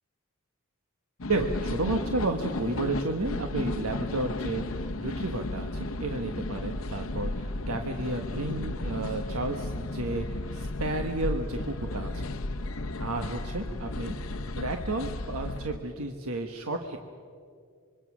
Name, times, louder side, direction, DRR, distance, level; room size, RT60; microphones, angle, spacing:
sound 1, 1.2-15.8, left 2 dB, 70° left, 0.9 m, -34 dB
voice 1, 1.3-12.3 13.0-14.1 14.5-17.0, right 2 dB, 85° right, 4 dB, 1.3 m, -32 dB
26.0 x 23.5 x 6.2 m, 2.1 s
head